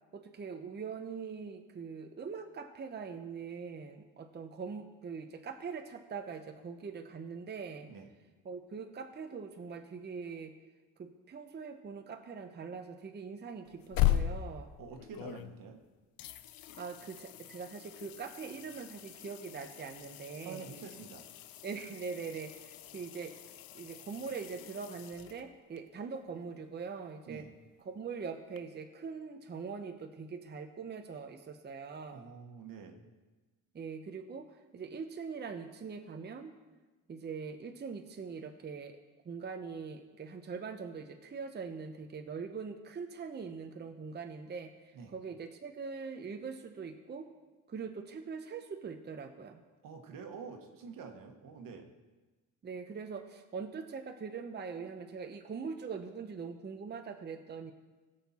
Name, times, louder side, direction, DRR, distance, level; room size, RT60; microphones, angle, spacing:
voice 1, 0.1-7.9 8.4-10.5 11.0-14.7 16.8-20.6 21.6-23.3 23.7-27.5 27.8-32.3 33.7-34.5 34.7-36.5 37.1-39.0 39.2-47.3 47.7-49.6 52.6-57.7, right 5 dB, 30° right, 5 dB, 0.8 m, -42 dB
sound 1, 13.6-15.8 16.2-25.8 28.6-28.7, left 13 dB, 80° left, 0.7 m, -38 dB
voice 2, 14.8-15.8 20.4-21.2 27.3-27.5 32.1-33.0 44.9-45.1 49.8-51.9, right 6 dB, 70° right, 5 dB, 1.5 m, -47 dB
17.0 x 6.6 x 4.3 m, 1.2 s
cardioid pair, 100°, 35 cm